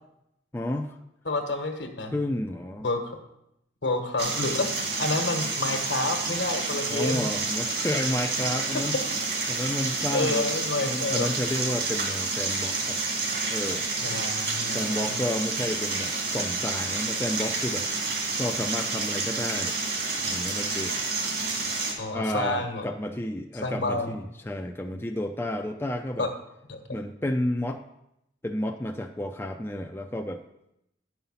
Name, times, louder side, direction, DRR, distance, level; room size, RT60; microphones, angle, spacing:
voice 1, 0.5-1.0 2.1-2.9 6.9-9.0 9.5-10.4 10.9-13.0 13.5-13.9 14.7-17.9 18.4-19.8 20.3-21.0 22.1-26.3 26.9-27.8 28.4-30.4, left 1 dB, 10° left, 4 dB, 0.4 m, -31 dB
voice 2, 1.2-2.1 2.8-3.2 3.8-7.3 10.1-11.3 14.0-15.2 22.0-22.8 23.6-24.2 26.2-26.3 26.7-26.8, left 2 dB, 70° left, 5 dB, 1.3 m, -29 dB
sound 1, 4.2-21.9, right 3 dB, 60° right, 2.1 m, -29 dB
10.5 x 5.7 x 5.6 m, 0.84 s
head